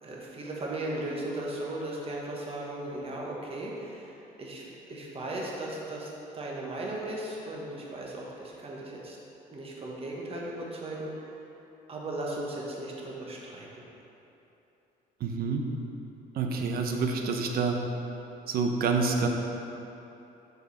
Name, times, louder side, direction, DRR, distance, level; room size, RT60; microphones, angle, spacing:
voice 1, 0.0-9.2 9.5-11.1 11.9-13.8, right 1 dB, 35° right, -3 dB, 1.4 m, -37 dB
voice 2, 15.2-15.6 16.3-17.8 18.5-19.3, right 4 dB, 65° right, 3 dB, 0.8 m, -27 dB
6.7 x 6.3 x 4.2 m, 3.0 s
cardioid pair, 110°, 17 cm